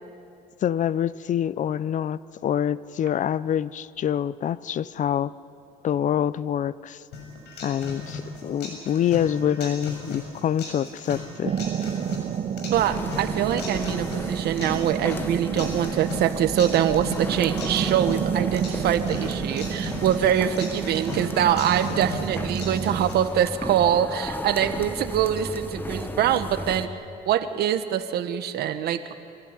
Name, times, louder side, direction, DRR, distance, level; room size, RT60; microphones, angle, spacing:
voice 1, 0.6-5.3 5.8-7.0 7.6-11.5, left 9 dB, 50° left, 18 dB, 0.6 m, -26 dB
sound 1, 7.1-23.1, left 3 dB, 80° left, 7.0 m, -38 dB
sound 2, 11.4-23.0, right 8 dB, 40° right, 0.8 m, -30 dB
voice 2, 12.6-26.9 27.3-29.0, right 10 dB, 70° right, 10 dB, 1.4 m, -24 dB
sound 3, 12.7-26.9, left 1 dB, 10° left, 1.1 m, -35 dB
25.5 x 16.0 x 9.9 m, 2.6 s
cardioid pair, 110°, 17 cm